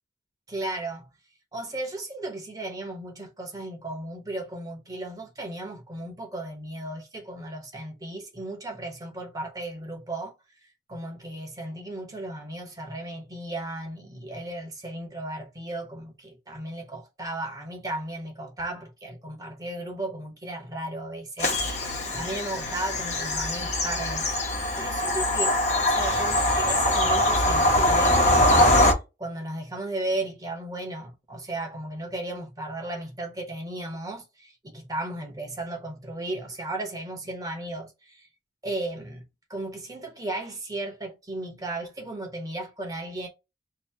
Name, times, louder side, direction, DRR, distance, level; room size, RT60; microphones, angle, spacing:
voice 1, 0.5-1.1 1.5-10.3 10.9-24.5 24.8-38.3 38.6-43.3, right 1 dB, 20° right, 0.9 m, -35 dB
Bird vocalization bird call bird song / Train, 21.4-28.9, left 1 dB, 40° left, 0.9 m, -23 dB
2.8 x 2.8 x 4.4 m
head